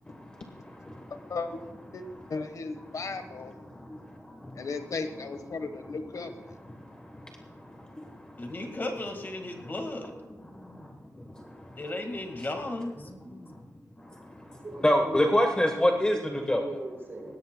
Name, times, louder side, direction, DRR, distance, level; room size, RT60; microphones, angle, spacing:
voice 1, 0.1-1.4 2.0-2.4 2.8-4.0 4.3-4.9 5.5-5.9 6.6-8.3 10.5-10.9 11.3-11.8 13.2-13.5 14.1-14.5 14.8-16.6, left 1 dB, 15° left, 3 dB, 1.1 m, -30 dB
voice 2, 1.3-1.6 1.9-2.0 2.3-3.5 4.6-6.3, left 4 dB, 65° left, 8 dB, 1.1 m, -35 dB
voice 3, 8.4-10.1 11.8-13.1, left 2 dB, 35° left, 4 dB, 1.7 m, -35 dB
voice 4, 14.5-17.4, right 1 dB, 40° right, 1 dB, 4.0 m, -42 dB
20.0 x 17.0 x 2.2 m, 1.2 s
wide cardioid pair, 145°, 6 cm